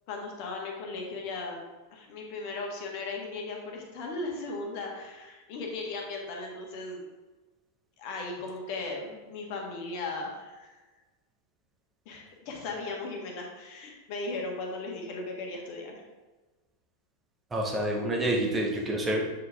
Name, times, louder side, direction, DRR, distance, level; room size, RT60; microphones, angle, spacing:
voice 1, 0.1-1.6 1.9-7.0 8.0-10.8 12.0-16.0, left 3 dB, 45° left, 0 dB, 1.5 m, -37 dB
voice 2, 17.5-19.3, right 1 dB, 15° right, -1 dB, 1.4 m, -28 dB
8.2 x 4.7 x 3.5 m, 1.2 s
figure-of-eight pair, 90°, 0 cm